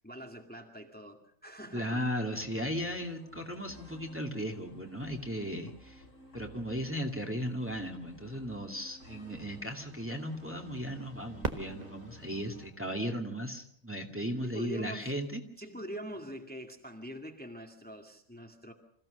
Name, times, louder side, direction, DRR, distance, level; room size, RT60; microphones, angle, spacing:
voice 1, 0.0-2.1 14.4-15.1 15.6-18.7, equal, 5° left, 2 dB, 2.1 m, -44 dB
voice 2, 1.7-6.0 6.3-15.4, equal, 10° right, 2 dB, 2.2 m, -36 dB
sound 1, 2.3-12.7, equal, 65° left, 4.3 m, -54 dB
Fireworks, 11.4-14.2 14.9-15.0 15.6-16.1 18.0-18.1, right 3 dB, 30° right, 1.5 m, -41 dB
27.0 x 15.5 x 6.6 m, 0.66 s
omnidirectional pair, 1.4 m